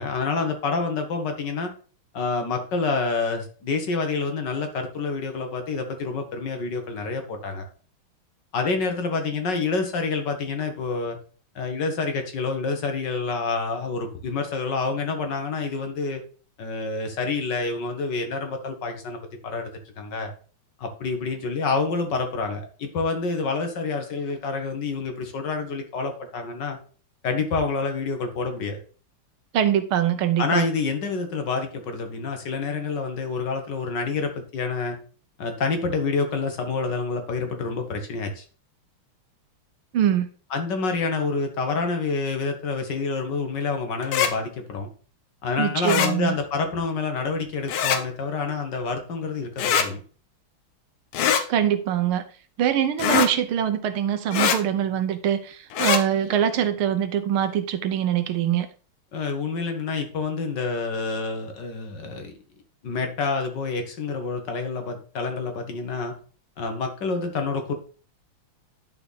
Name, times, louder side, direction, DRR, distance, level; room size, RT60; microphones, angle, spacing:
voice 1, 0.0-1.7 2.1-7.7 8.5-11.2 11.6-16.2 16.6-20.3 20.8-26.8 27.2-28.8 30.4-35.0 35.4-38.4 40.5-44.9 45.4-50.0 59.1-62.3 62.8-66.1 66.6-67.7, left 4 dB, 60° left, 1.8 m, -28 dB
voice 2, 29.5-30.7 39.9-40.3 45.6-46.3 51.5-52.2 52.6-58.7, right 10 dB, 80° right, 1.7 m, -23 dB
sound 1, 44.0-44.3 45.8-46.1 47.7-48.0 49.6-49.9 51.1-51.4 53.0-53.3 54.3-54.6 55.7-56.0, left 8 dB, 90° left, 1.8 m, -22 dB
11.0 x 4.5 x 4.0 m
omnidirectional pair, 2.3 m